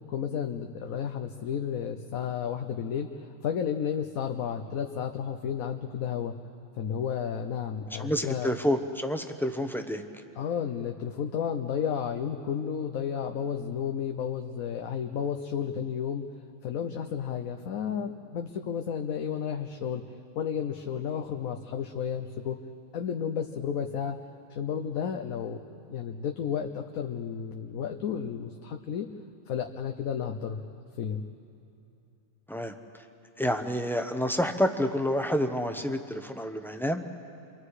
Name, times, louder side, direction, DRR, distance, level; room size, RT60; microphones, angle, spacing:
voice 1, 0.1-6.3 6.8-8.5 10.4-16.2 16.6-20.0 20.4-22.6 22.9-24.1 24.5-25.6 25.9-29.1 29.5-30.6 31.0-31.2, left 8 dB, 90° left, 5 dB, 1.2 m, -32 dB
voice 2, 8.0-10.0 32.5-32.7 33.4-37.0, equal, ahead, 6 dB, 0.7 m, -28 dB
29.0 x 23.5 x 4.9 m, 2.7 s
omnidirectional pair, 1.4 m